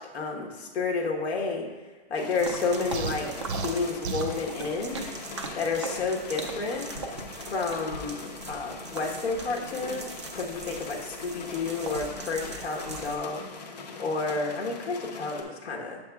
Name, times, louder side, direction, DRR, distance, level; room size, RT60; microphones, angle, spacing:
voice 1, 0.0-1.7 2.1-5.0 5.5-6.9 7.5-13.7 14.0-16.0, left 4 dB, 80° left, 0 dB, 1.3 m, -31 dB
sound 1, 2.2-15.4, left 4 dB, 40° left, 0.6 m, -42 dB
sound 2, 2.4-13.2, right 3 dB, 30° right, 0.3 m, -40 dB
sound 3, 2.9-4.4, right 4 dB, 80° right, 0.7 m, -33 dB
8.3 x 7.1 x 2.3 m, 1.2 s
hypercardioid pair, 175°, 32 cm